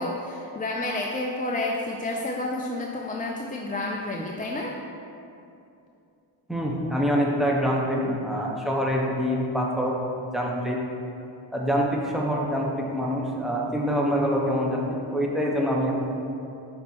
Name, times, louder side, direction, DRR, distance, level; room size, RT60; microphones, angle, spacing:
voice 1, 0.0-4.7, left 2 dB, 20° left, -1 dB, 0.4 m, -30 dB
voice 2, 6.5-9.9 10.3-10.8 11.5-15.9, equal, ahead, -2 dB, 1.0 m, -25 dB
5.9 x 4.3 x 4.5 m, 2.7 s
cardioid pair, 65°, 49 cm